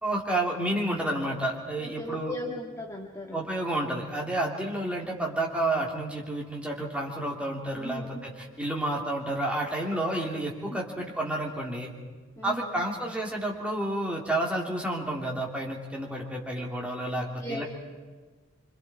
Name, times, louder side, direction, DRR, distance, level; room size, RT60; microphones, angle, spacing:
voice 1, 0.0-2.3 3.3-11.9 12.4-17.6, right 1 dB, 5° right, -2 dB, 3.1 m, -30 dB
voice 2, 1.8-3.4 7.8-8.2 10.7-11.0 12.4-12.8 17.2-17.6, equal, 15° left, -1 dB, 1.7 m, -38 dB
26.5 x 26.0 x 4.4 m, 1.4 s
head